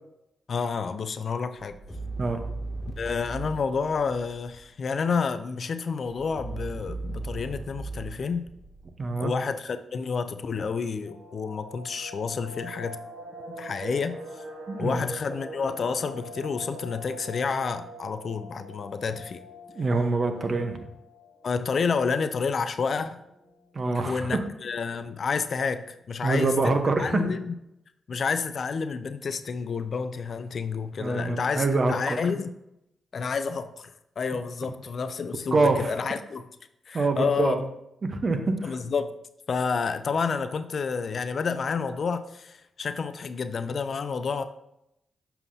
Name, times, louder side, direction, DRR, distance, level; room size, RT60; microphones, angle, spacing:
voice 1, 0.5-1.7 3.0-8.5 9.2-13.0 13.6-14.4 14.8-19.4 21.4-23.2 23.9-26.7 27.0-27.5 28.1-32.5 33.1-33.9 34.2-36.4 36.9-37.6 38.6-39.1 39.5-44.4, left 5 dB, 60° left, 10 dB, 0.4 m, -29 dB
sound 1, 1.6-4.8 6.1-9.4, right 2 dB, 5° left, 2.0 m, -38 dB
voice 2, 9.0-9.3 14.7-15.0 19.7-20.8 23.7-24.4 26.2-27.2 31.0-32.2 35.5-35.9 36.9-37.6 38.0-38.7, right 3 dB, 50° right, 6 dB, 0.9 m, -25 dB
sound 2, 11.0-21.8 22.1-22.2 22.6-22.8 23.2-23.7 24.2-24.3 24.4-25.0 25.3-25.4, equal, 70° right, 2.1 m, -43 dB
7.1 x 5.6 x 2.7 m, 0.83 s
supercardioid pair, 55°, 0 cm